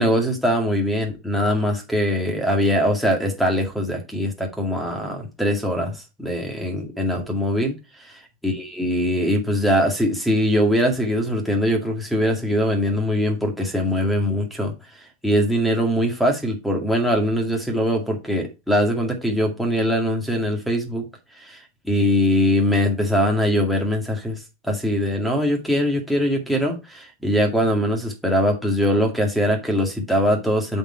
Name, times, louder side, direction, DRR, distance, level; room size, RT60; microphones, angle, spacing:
voice 1, 0.0-7.7 8.0-14.7 15.2-21.1 21.4-21.6 21.8-30.8, equal, ahead, 2.1 m, -22 dB
7.6 x 4.6 x 4.5 m
supercardioid pair, 145°, 0 cm